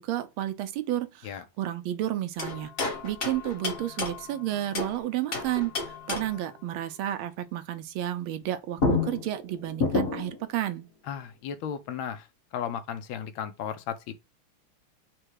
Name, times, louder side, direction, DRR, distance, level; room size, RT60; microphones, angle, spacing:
voice 1, 0.0-10.9, right 12 dB, 80° right, 1.4 m, -32 dB
sound 1, 2.4-5.0 5.3-6.5 8.4-8.5 8.8-10.4, left 3 dB, 35° left, 1.0 m, -30 dB
voice 2, 11.1-12.3 12.5-14.1, left 8 dB, 75° left, 1.3 m, -35 dB
4.4 x 2.3 x 4.6 m
omnidirectional pair, 2.3 m